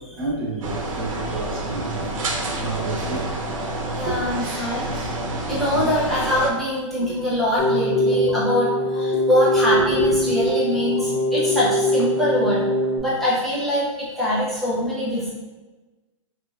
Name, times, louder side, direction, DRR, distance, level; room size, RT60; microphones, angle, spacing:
voice 1, 0.2-2.1 2.6-3.3 4.0-5.3 5.7-5.9 9.7-10.1, right 3 dB, 45° right, -5 dB, 1.0 m, -30 dB
sound 1, 0.6-6.5, right 2 dB, 80° right, 0.7 m, -28 dB
voice 2, 4.0-4.9 5.5-12.6 13.0-15.3, left 1 dB, ahead, -10 dB, 0.4 m, -23 dB
Keyboard (musical), 7.6-13.0, equal, 60° left, 0.7 m, -22 dB
3.0 x 2.8 x 2.3 m, 1.2 s
hypercardioid pair, 175°, 17 cm